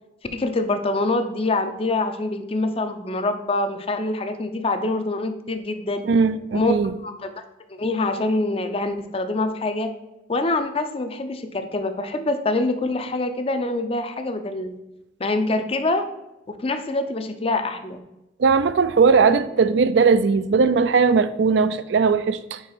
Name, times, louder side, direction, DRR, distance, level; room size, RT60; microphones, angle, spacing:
voice 1, 0.3-6.0 6.5-6.8 7.0-7.3 7.7-9.9 10.3-14.7 15.2-16.0 16.6-18.0, left 2 dB, 30° left, 8 dB, 0.5 m, -25 dB
voice 2, 6.1-6.9 18.4-22.6, right 5 dB, 75° right, 13 dB, 0.4 m, -18 dB
4.8 x 4.7 x 5.5 m, 0.95 s
head